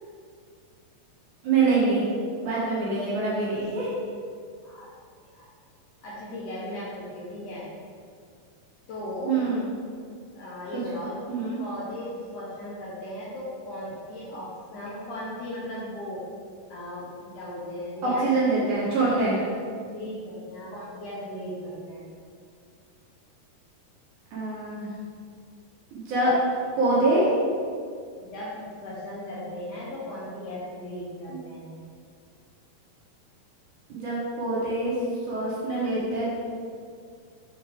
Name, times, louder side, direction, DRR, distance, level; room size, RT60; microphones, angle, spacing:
voice 1, 1.4-2.1 2.4-3.9 9.3-9.7 10.7-10.8 11.3-11.6 18.0-19.4 24.3-24.9 25.9-26.3 26.8-27.3 31.3-31.4 33.9-35.0 35.3-36.3, right 3 dB, 60° right, -7 dB, 2.3 m, -25 dB
voice 2, 6.0-7.7 8.9-9.3 10.3-11.3 11.6-16.2 16.7-18.3 18.8-19.5 19.9-22.1 28.2-31.8, left 1 dB, 70° left, -6 dB, 2.1 m, -37 dB
6.9 x 6.1 x 3.5 m, 2.2 s
omnidirectional pair, 4.5 m